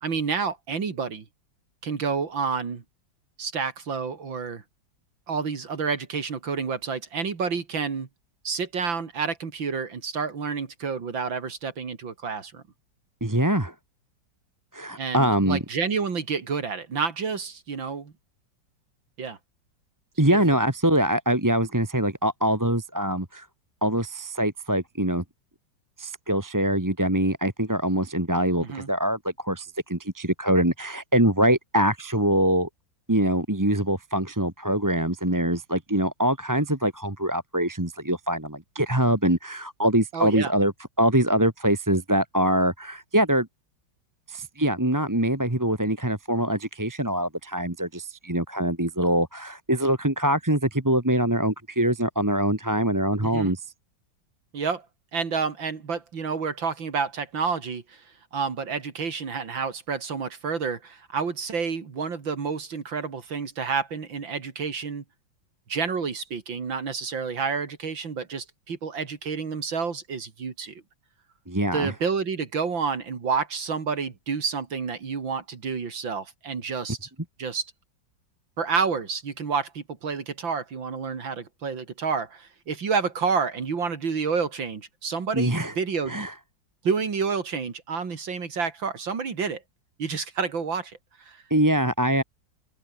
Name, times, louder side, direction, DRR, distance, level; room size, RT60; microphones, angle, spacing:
voice 1, 0.0-1.2 1.8-2.8 3.4-4.6 5.3-8.1 8.4-12.6 15.0-18.1 19.2-19.4 20.3-20.4 28.6-28.9 40.1-40.5 53.2-53.5 54.5-54.8 55.1-58.0 58.3-65.0 65.7-70.8 71.7-77.1 77.4-77.7 78.6-86.2 86.8-89.6 90.0-91.4, right 5 dB, 80° right, 3.3 m, -29 dB
voice 2, 13.2-13.7 14.7-15.6 20.2-23.5 23.8-25.2 26.0-32.7 33.1-43.5 44.3-53.7 71.5-71.9 85.3-85.7 86.1-86.3 91.5-92.2, right 1 dB, 10° right, 1.9 m, -24 dB
open air
omnidirectional pair, 2.1 m